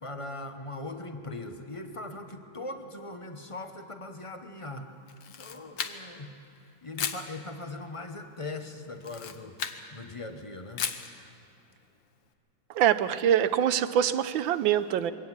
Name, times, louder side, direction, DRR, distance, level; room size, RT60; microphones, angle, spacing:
voice 1, 0.0-4.9 5.3-6.3 6.6-10.9, left 2 dB, 30° left, 6 dB, 0.5 m, -40 dB
Camera, 5.1-6.3 7.0-7.3 9.0-9.8 10.8-11.1, left 8 dB, 70° left, 1.7 m, -34 dB
voice 2, 12.7-15.1, right 10 dB, 80° right, 13 dB, 1.5 m, -24 dB
22.5 x 18.0 x 7.4 m, 2.7 s
omnidirectional pair, 2.1 m